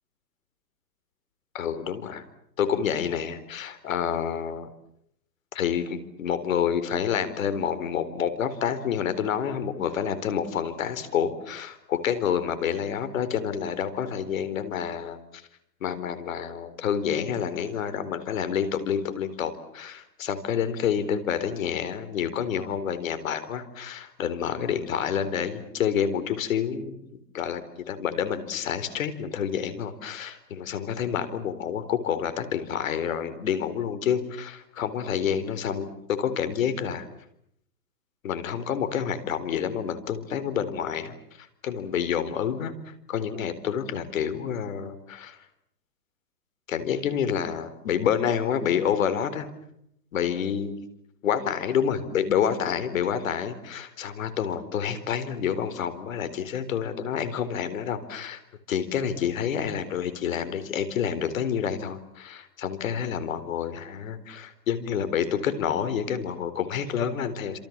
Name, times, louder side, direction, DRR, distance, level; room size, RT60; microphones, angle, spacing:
voice 1, 1.5-2.3 2.6-4.7 5.5-15.2 15.8-37.1 38.2-45.4 46.7-49.5 50.1-50.8 51.2-58.4 58.7-67.6, left 8 dB, 55° left, 12 dB, 4.0 m, -28 dB
28.5 x 27.0 x 7.3 m, 0.74 s
hypercardioid pair, 145°, 48 cm